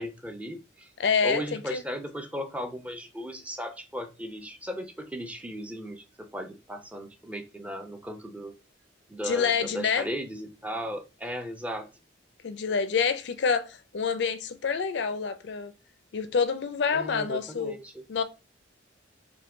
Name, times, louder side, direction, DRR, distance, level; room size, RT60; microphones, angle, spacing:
voice 1, 0.0-0.9 1.2-8.5 9.1-11.9 16.9-18.0, equal, 5° right, 0.5 m, -36 dB
voice 2, 1.0-1.8 9.2-10.1 12.4-15.7 16.1-17.8 18.1-18.2, left 6 dB, 60° left, 0.4 m, -27 dB
4.4 x 2.2 x 3.6 m
head